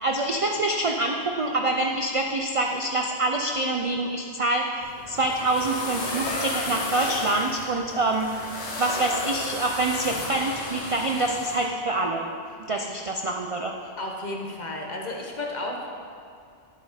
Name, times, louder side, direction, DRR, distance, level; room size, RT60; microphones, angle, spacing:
voice 1, 0.0-4.7 5.1-8.5 8.8-12.2 12.7-13.7, right 2 dB, 55° right, 2 dB, 0.3 m, -26 dB
sound 1, 4.8-11.7, left 2 dB, 75° left, 1.5 m, -33 dB
voice 2, 12.6-12.9 14.0-15.9, left 2 dB, 40° left, 0 dB, 1.0 m, -33 dB
10.5 x 5.2 x 4.9 m, 2.3 s
omnidirectional pair, 1.2 m